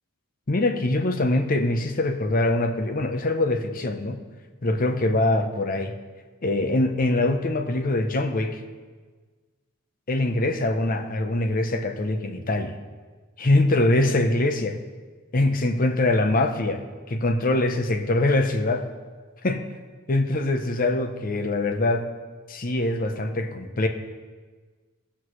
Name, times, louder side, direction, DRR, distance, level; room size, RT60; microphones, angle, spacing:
voice 1, 0.5-4.2 4.6-6.0 6.4-8.6 10.1-12.8 13.4-14.8 15.3-16.8 17.1-18.9 19.4-19.7 20.1-22.1 22.5-23.9, left 2 dB, 40° left, 7 dB, 0.7 m, -23 dB
18.5 x 6.1 x 3.1 m, 1.4 s
head